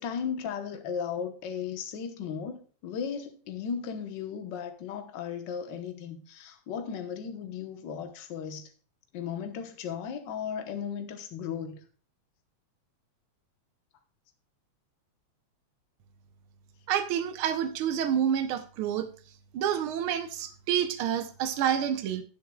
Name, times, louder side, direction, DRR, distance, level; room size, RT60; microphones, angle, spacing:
voice 1, 0.0-8.7 9.1-11.8, left 7 dB, 60° left, 1.1 m, -36 dB
voice 2, 16.9-19.1 19.5-22.2, right 9 dB, 80° right, 1.1 m, -28 dB
17.5 x 7.3 x 2.3 m
omnidirectional pair, 3.4 m